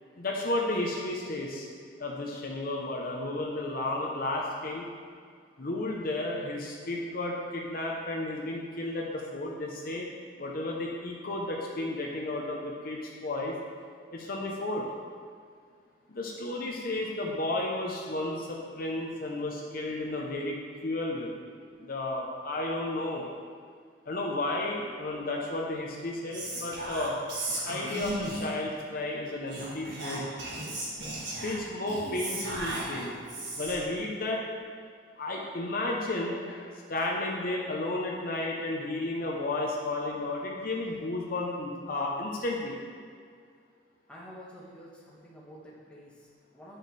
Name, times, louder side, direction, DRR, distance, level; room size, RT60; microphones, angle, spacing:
voice 1, 0.2-1.7 2.0-4.9 5.6-10.1 10.4-13.6 14.1-14.8 16.1-20.6 20.8-21.3 21.8-23.3 24.1-27.2 27.5-30.2 31.4-33.2 33.6-34.4 35.2-42.8, left 2 dB, 50° left, -1 dB, 0.8 m, -33 dB
Whispering, 26.3-28.6 29.5-33.9, right 1 dB, 65° right, 1.8 m, -36 dB
voice 2, 44.1-46.8, equal, 5° left, -6 dB, 1.3 m, -49 dB
9.1 x 6.6 x 3.3 m, 2.1 s
head